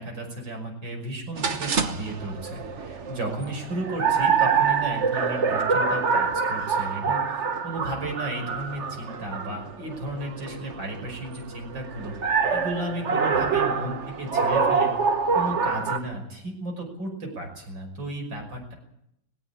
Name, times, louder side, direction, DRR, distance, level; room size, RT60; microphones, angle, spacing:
voice 1, 0.0-12.1 12.5-14.9 15.3-18.7, right 1 dB, 75° right, 2 dB, 6.4 m, -34 dB
sound 1, 1.4-16.0, right 5 dB, 40° right, 1.4 m, -26 dB
20.0 x 17.0 x 8.6 m, 0.79 s
omnidirectional pair, 2.1 m